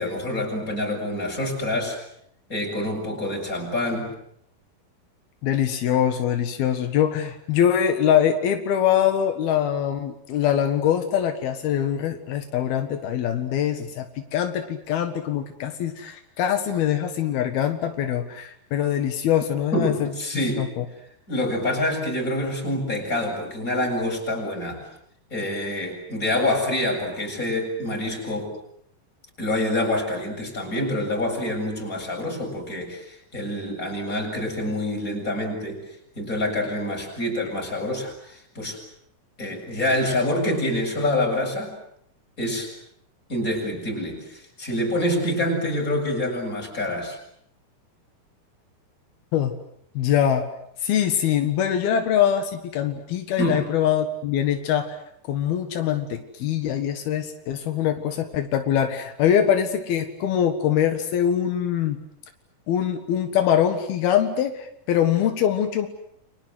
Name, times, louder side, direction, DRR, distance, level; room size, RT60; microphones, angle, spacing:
voice 1, 0.0-2.0 2.5-4.1 19.7-20.6 21.3-24.9 25.3-28.5 29.4-35.8 36.2-38.8 39.4-41.7 42.4-42.7 43.3-47.2 53.4-53.6, left 1 dB, 20° left, 1 dB, 7.9 m, -26 dB
voice 2, 5.4-20.1 20.6-20.9 49.3-49.5 50.0-50.5 50.8-55.0 55.3-62.0 62.7-65.9, left 9 dB, 85° left, 7 dB, 3.6 m, -23 dB
30.0 x 25.0 x 8.0 m, 0.71 s
omnidirectional pair, 4.3 m